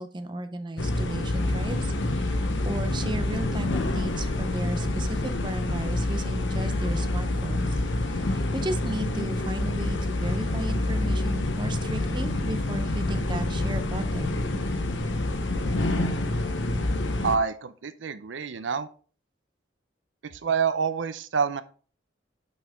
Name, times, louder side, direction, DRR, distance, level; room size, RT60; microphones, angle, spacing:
voice 1, 0.0-2.4 2.6-14.4, right 1 dB, 25° right, 8 dB, 0.5 m, -35 dB
sound 1, 0.8-17.4, left 2 dB, 80° left, 0.8 m, -27 dB
voice 2, 17.2-18.9 20.2-21.6, right 6 dB, 85° right, 13 dB, 0.5 m, -27 dB
6.2 x 5.6 x 3.5 m, 0.40 s
head